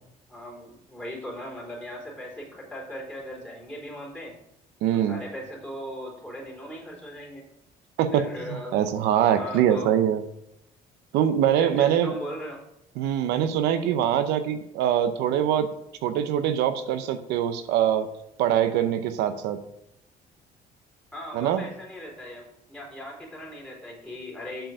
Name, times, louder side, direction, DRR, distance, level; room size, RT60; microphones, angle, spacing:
voice 1, 0.3-4.4 5.0-7.4 8.1-8.8 9.3-9.9 11.6-12.6 21.1-24.7, equal, 5° left, -3 dB, 3.5 m, -38 dB
voice 2, 4.8-5.2 8.0-8.2 8.5-10.2 11.1-12.1 13.0-15.7 16.0-18.1 18.4-19.6 21.3-21.7, right 10 dB, 90° right, 9 dB, 0.7 m, -23 dB
7.7 x 4.6 x 6.4 m, 0.81 s
cardioid pair, 110°, 17 cm